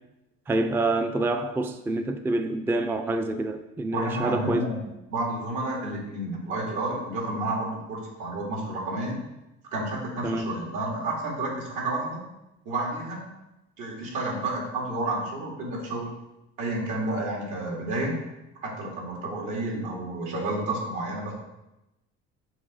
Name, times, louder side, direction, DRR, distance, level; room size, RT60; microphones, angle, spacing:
voice 1, 0.5-4.6 10.2-10.5, right 2 dB, 10° right, 0.3 m, -27 dB
voice 2, 3.9-9.2 9.7-12.2 12.7-13.2 13.8-16.2 16.6-18.2 18.6-21.3, right 2 dB, 80° right, 2.2 m, -30 dB
7.2 x 3.2 x 4.9 m
cardioid pair, 100°, 30 cm